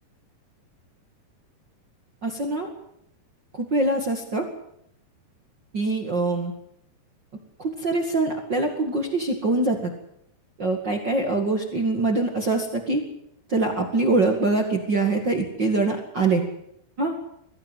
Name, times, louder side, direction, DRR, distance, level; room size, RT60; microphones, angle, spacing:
voice 1, 2.2-2.7 3.7-4.4 5.7-6.5 7.6-9.9 10.6-13.0 13.5-16.4 17.0-17.1, right 2 dB, 40° right, 3 dB, 1.8 m, -24 dB
22.0 x 16.0 x 9.1 m, 0.75 s
omnidirectional pair, 5.0 m